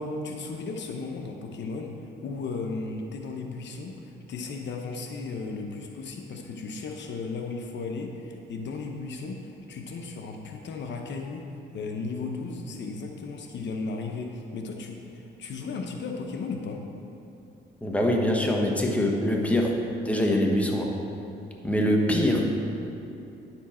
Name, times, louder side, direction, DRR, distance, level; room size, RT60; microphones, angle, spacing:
voice 1, 0.2-1.9 2.2-11.5 11.7-16.8, left 4 dB, 65° left, 3 dB, 0.9 m, -35 dB
voice 2, 17.8-19.7 20.0-20.9 21.6-22.5, left 1 dB, 5° left, 0 dB, 1.3 m, -23 dB
10.0 x 7.2 x 4.3 m, 2.9 s
cardioid pair, 90°, 20 cm